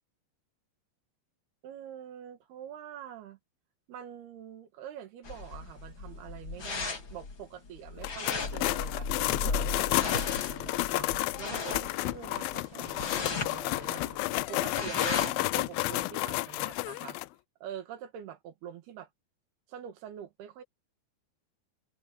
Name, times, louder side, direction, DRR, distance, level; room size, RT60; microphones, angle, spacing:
voice 1, 1.6-3.4 3.9-14.2 14.5-17.2 17.6-19.1 19.7-20.6, right 9 dB, 75° right, 3.7 m, -45 dB
sound 1, 5.2-15.5, left 4 dB, 35° left, 3.0 m, -37 dB
sound 2, 8.0-17.2, left 19 dB, 80° left, 2.2 m, -31 dB
open air
omnidirectional pair, 4.6 m